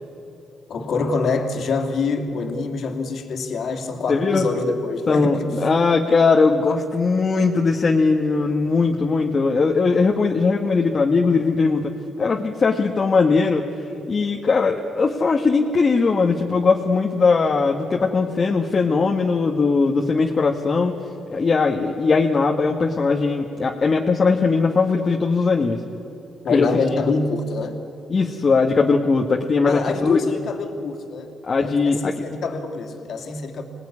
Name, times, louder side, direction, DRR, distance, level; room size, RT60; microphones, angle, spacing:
voice 1, 0.7-5.5 26.4-27.8 29.6-33.6, left 3 dB, 60° left, 3 dB, 2.8 m, -25 dB
voice 2, 4.1-4.4 5.1-11.9 12.2-13.6 14.1-21.0 21.3-25.8 26.5-26.7 28.1-30.4 31.4-32.1, left 4 dB, 40° left, 1 dB, 1.7 m, -19 dB
27.0 x 19.0 x 9.8 m, 2.7 s
cardioid pair, 90°, 0 cm